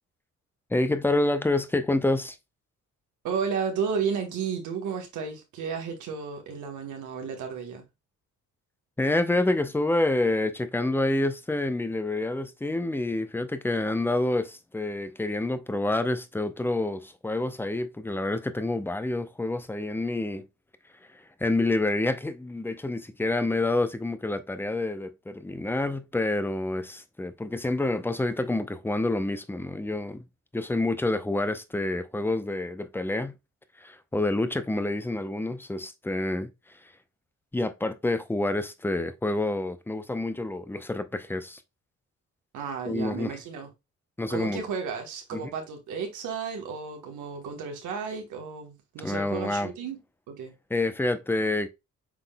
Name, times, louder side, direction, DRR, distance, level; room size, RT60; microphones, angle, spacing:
voice 1, 0.7-2.4 9.0-20.4 21.1-30.3 30.5-33.4 33.8-36.9 37.5-41.6 42.9-43.4 44.2-44.6 45.3-45.5 49.0-49.7 50.7-51.7, left 2 dB, 5° left, 0.6 m, -28 dB
voice 2, 3.2-7.8 42.5-43.7 44.3-50.0 50.3-50.5, right 6 dB, 80° right, 1.2 m, -33 dB
6.0 x 3.7 x 2.2 m
cardioid pair, 90°, 30 cm